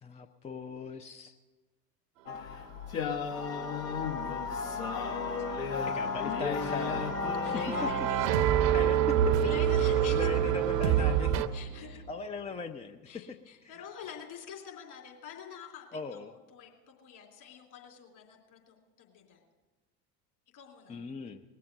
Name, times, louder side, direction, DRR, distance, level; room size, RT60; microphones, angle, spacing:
voice 1, 0.0-1.3 5.8-7.2 7.4-7.5 7.8-7.9 8.5-9.3 9.8-11.4 11.8-13.4 13.6-13.8 15.9-16.3 20.9-21.4, left 4 dB, 15° left, 7 dB, 0.5 m, -39 dB
sound 1, 2.3-7.9, left 5 dB, 65° left, 1.8 m, -33 dB
sound 2, 4.1-11.5, right 10 dB, 55° right, 0.9 m, -29 dB
voice 2, 7.4-8.3 9.4-10.3 11.5-12.0 13.1-16.2 16.5-16.7 17.0-19.4 20.5-21.0, left 8 dB, 50° left, 1 dB, 3.6 m, -45 dB
sound 3, 9.2-12.1, right 7 dB, 80° right, 1.0 m, -31 dB
19.5 x 7.6 x 7.7 m, 1.3 s
figure-of-eight pair, 70°, 49 cm